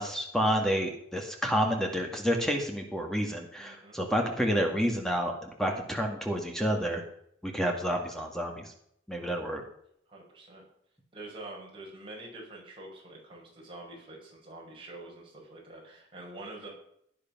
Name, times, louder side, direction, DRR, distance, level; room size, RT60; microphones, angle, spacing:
voice 1, 0.0-7.0 7.4-8.7 9.1-9.6, equal, ahead, 2 dB, 2.0 m, -29 dB
voice 2, 3.6-4.0 9.2-9.4 10.1-10.7 11.1-16.7, right 2 dB, 25° right, -3 dB, 5.9 m, -46 dB
17.0 x 10.0 x 6.0 m, 0.71 s
head